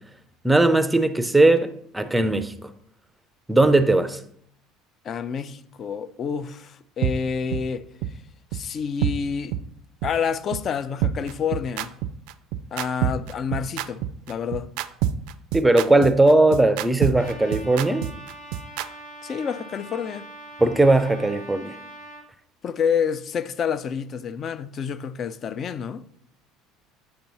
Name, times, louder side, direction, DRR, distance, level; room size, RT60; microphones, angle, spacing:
voice 1, 0.4-2.5 3.5-4.2 15.5-18.1 20.6-21.7, right 2 dB, 5° right, 0.5 m, -18 dB
voice 2, 5.0-7.8 8.5-9.6 10.0-11.9 12.7-14.7 19.2-20.3 22.6-26.1, left 7 dB, 40° left, 0.4 m, -28 dB
sound 1, 7.0-7.1 7.5-7.6 8.0-8.1 8.5-8.6 9.0-9.1 9.5-9.6 10.0-10.1 10.5-10.6 11.0-18.9, right 12 dB, 75° right, 0.3 m, -26 dB
Trumpet, 17.1-22.2, right 1 dB, 75° left, 1.5 m, -42 dB
7.6 x 2.9 x 5.4 m
supercardioid pair, 110°, 0 cm